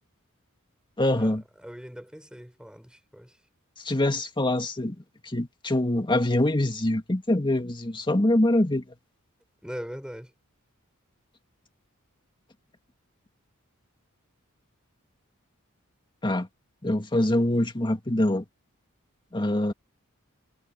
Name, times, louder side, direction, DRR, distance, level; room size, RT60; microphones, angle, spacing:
voice 1, 1.0-1.4 3.8-5.0 5.2-8.8 16.2-16.5 16.8-18.4 19.3-19.7, left 1 dB, 25° left, 2.0 m, -24 dB
voice 2, 1.6-3.4 9.6-10.3, equal, 5° right, 6.2 m, -40 dB
head